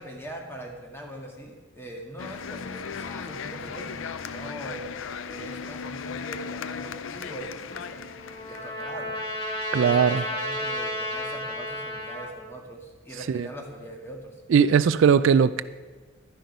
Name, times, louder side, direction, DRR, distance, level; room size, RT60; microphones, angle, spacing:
voice 1, 0.0-4.8 5.2-8.0 8.5-9.2 9.8-14.4, right 1 dB, 10° left, 1.7 m, -41 dB
sound 1, 2.2-8.9, left 6 dB, 75° left, 0.5 m, -37 dB
Trumpet, 7.7-12.4, left 1 dB, 30° left, 3.2 m, -32 dB
voice 2, 9.7-10.2 13.3-13.5 14.5-15.6, right 7 dB, 65° right, 0.3 m, -19 dB
11.5 x 10.5 x 5.4 m
head